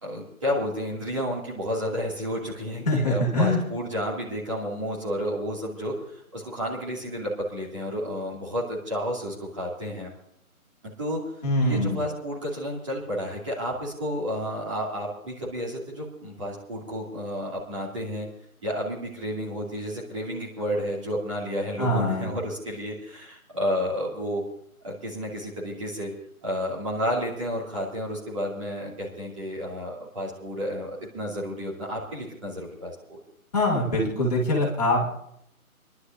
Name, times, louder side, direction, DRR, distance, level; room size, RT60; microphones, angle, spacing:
voice 1, 0.0-10.1 11.0-11.2 11.6-18.3 18.6-24.4 24.8-26.1 26.4-33.2, equal, 20° right, -6 dB, 2.4 m, -31 dB
voice 2, 2.9-3.6 11.4-12.0 21.8-22.3 33.5-35.1, left 1 dB, 25° left, -3 dB, 2.8 m, -23 dB
29.0 x 11.5 x 2.6 m, 0.74 s
figure-of-eight pair, 165°, 44 cm